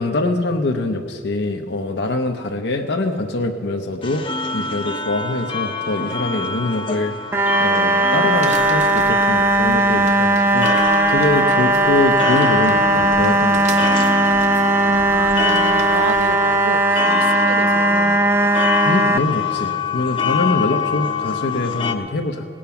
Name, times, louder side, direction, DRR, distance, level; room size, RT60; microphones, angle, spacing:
voice 1, 0.0-4.2 4.5-7.1 7.6-10.7 11.1-13.9 18.8-22.5, left 2 dB, 60° left, 3 dB, 0.7 m, -23 dB
sound 1, 4.0-21.9, left 6 dB, 25° left, 0.7 m, -25 dB
sound 2, 7.3-19.2, right 2 dB, 15° right, 0.4 m, -17 dB
sound 3, 8.3-16.3, right 3 dB, 35° right, 0.8 m, -39 dB
voice 2, 14.9-18.5, right 5 dB, 90° right, 14 dB, 0.5 m, -30 dB
18.5 x 8.6 x 5.8 m, 2.5 s
head